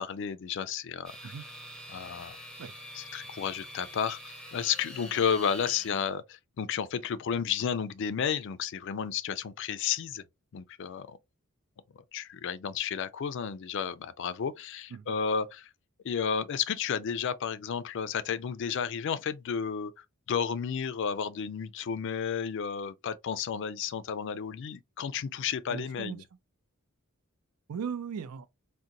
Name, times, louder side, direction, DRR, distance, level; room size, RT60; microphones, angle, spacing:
voice 1, 0.0-1.3 1.9-2.4 2.9-10.2 10.5-11.2 11.9-15.7 16.0-26.2, left 7 dB, 55° left, 0.3 m, -32 dB
sound 1, 1.0-6.1, equal, 5° left, 0.6 m, -45 dB
voice 2, 25.7-26.2 27.7-28.5, right 6 dB, 90° right, 0.4 m, -37 dB
3.8 x 2.1 x 2.8 m
head